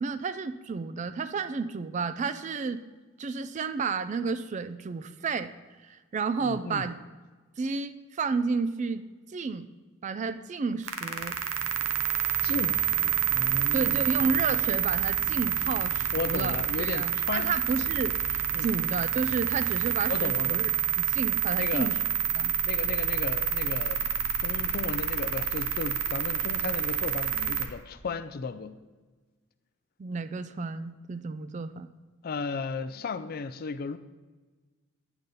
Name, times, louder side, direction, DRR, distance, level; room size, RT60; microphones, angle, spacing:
voice 1, 0.0-2.8 3.2-5.5 5.9-6.9 7.6-9.0 9.3-9.7 10.0-11.4 13.7-20.7 21.0-22.0 22.3-22.5 30.0-31.9, right 4 dB, 35° right, 12 dB, 0.3 m, -31 dB
voice 2, 6.4-6.9 12.4-14.1 16.1-17.5 18.5-18.7 20.1-20.6 21.6-21.9 22.6-24.1 24.4-28.8 32.2-34.0, left 4 dB, 45° left, 12 dB, 0.4 m, -35 dB
sound 1, 10.8-27.7, right 9 dB, 75° right, 0.8 m, -28 dB
9.1 x 4.0 x 6.8 m, 1.3 s
head